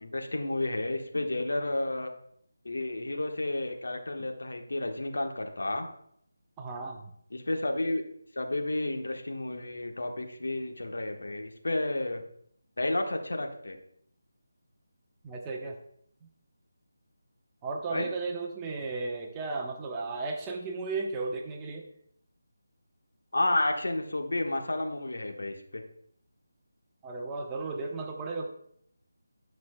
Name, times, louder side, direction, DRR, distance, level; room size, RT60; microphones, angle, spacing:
voice 1, 0.0-2.1 2.6-5.9 7.3-8.0 8.3-12.2 12.8-13.8 17.9-18.1 23.3-25.8, left 2 dB, 70° left, 3 dB, 1.3 m, -31 dB
voice 2, 6.6-7.1 15.2-15.8 17.6-21.9 27.0-28.5, right 3 dB, 15° right, 1 dB, 0.9 m, -34 dB
15.5 x 5.9 x 2.2 m, 0.68 s
figure-of-eight pair, 160°, 0 cm